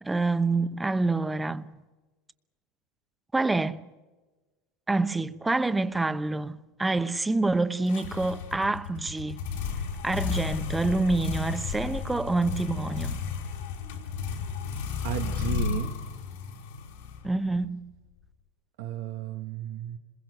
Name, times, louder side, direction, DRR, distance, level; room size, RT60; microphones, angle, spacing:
voice 1, 0.0-1.7 3.3-3.9 4.9-9.5 10.0-13.2 17.2-17.9, right 3 dB, 10° right, 1.0 m, -27 dB
sound 1, 7.9-17.6, left 6 dB, 85° left, 5.1 m, -33 dB
voice 2, 15.0-16.0 18.8-20.0, right 11 dB, 85° right, 1.6 m, -33 dB
26.5 x 21.5 x 6.7 m
supercardioid pair, 115°, 0 cm